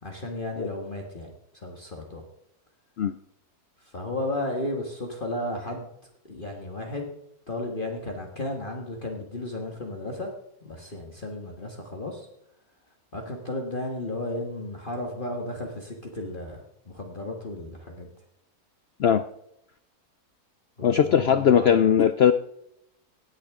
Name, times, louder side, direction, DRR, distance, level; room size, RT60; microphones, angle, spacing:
voice 1, 0.0-2.2 3.8-5.9 6.2-7.1 7.5-10.3 10.6-12.3 13.1-18.1 20.8-21.8, left 1 dB, 35° left, 1 dB, 1.6 m, -34 dB
voice 2, 20.8-22.3, left 8 dB, 80° left, 11 dB, 0.5 m, -19 dB
17.5 x 10.0 x 3.6 m, 0.75 s
omnidirectional pair, 1.7 m